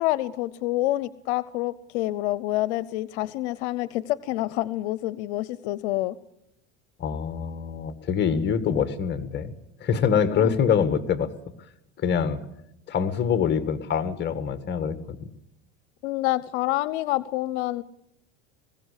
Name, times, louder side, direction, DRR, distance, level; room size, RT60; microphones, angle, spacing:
voice 1, 0.0-6.2 10.3-10.5 16.0-17.8, left 16 dB, 80° left, 19 dB, 0.7 m, -27 dB
voice 2, 7.0-9.5 9.8-11.3 12.0-12.4 12.9-15.3, left 7 dB, 30° left, 11 dB, 1.7 m, -25 dB
20.5 x 16.0 x 8.3 m, 0.81 s
supercardioid pair, 125°, 33 cm